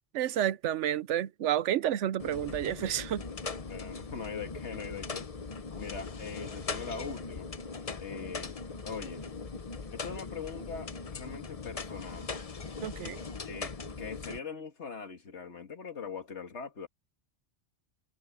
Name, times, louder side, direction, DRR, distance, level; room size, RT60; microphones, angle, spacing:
voice 1, 0.1-3.2 12.8-13.2, right 11 dB, 85° right, 1.0 m, -30 dB
sound 1, 2.2-14.4, left 4 dB, 35° left, 0.9 m, -40 dB
voice 2, 3.7-5.3 5.8-7.5 8.0-8.6 8.8-9.3 9.9-12.3 13.4-16.9, left 5 dB, 75° left, 2.1 m, -41 dB
omnidirectional pair, 1.2 m